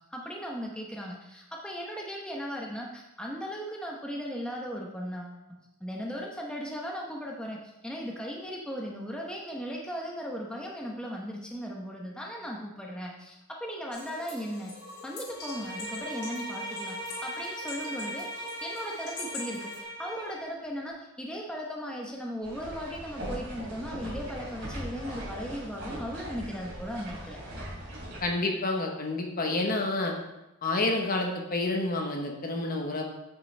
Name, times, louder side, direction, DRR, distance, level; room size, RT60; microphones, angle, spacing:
voice 1, 0.1-14.7 15.0-27.4, equal, 5° left, -2 dB, 0.8 m, -37 dB
sound 1, 13.9-19.8, left 3 dB, 90° left, 2.3 m, -44 dB
Bowed string instrument, 15.3-20.5, right 1 dB, 20° left, 2.4 m, -39 dB
sound 2, 22.4-28.2, equal, 55° right, 3.0 m, -40 dB
voice 2, 28.2-30.1 30.6-33.0, left 2 dB, 40° left, 2 dB, 1.0 m, -29 dB
8.6 x 6.7 x 3.3 m, 0.94 s
head